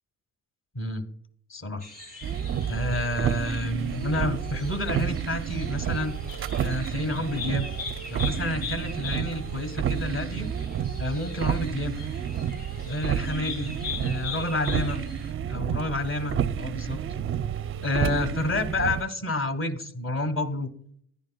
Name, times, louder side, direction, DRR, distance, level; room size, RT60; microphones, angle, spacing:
voice 1, 0.7-1.1 1.5-1.8 2.7-6.2 6.6-7.7 8.1-10.5 11.0-11.9 12.8-13.7 14.0-15.0 15.5-17.0 17.8-20.7, left 1 dB, 30° left, 8 dB, 1.3 m, -29 dB
sound 1, 1.8-15.3, left 5 dB, 80° left, 4.1 m, -41 dB
sound 2, 2.2-19.0, right 9 dB, 35° right, 0.5 m, -30 dB
10.5 x 9.3 x 2.3 m, 0.63 s
supercardioid pair, 70°, 39 cm